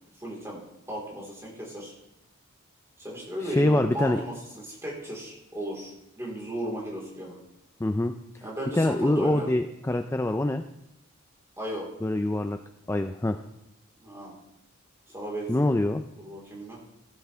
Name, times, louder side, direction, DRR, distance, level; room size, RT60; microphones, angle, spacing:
voice 1, 0.1-0.6 0.9-1.9 3.0-7.4 8.4-9.5 11.6-11.9 14.0-14.4 15.1-15.7 16.2-16.8, right 1 dB, 15° right, -4 dB, 4.2 m, -36 dB
voice 2, 3.4-4.2 7.8-8.1 8.7-10.6 12.0-12.6 12.9-13.4 15.5-16.0, left 1 dB, 10° left, 7 dB, 0.4 m, -24 dB
16.5 x 11.5 x 3.5 m, 0.83 s
head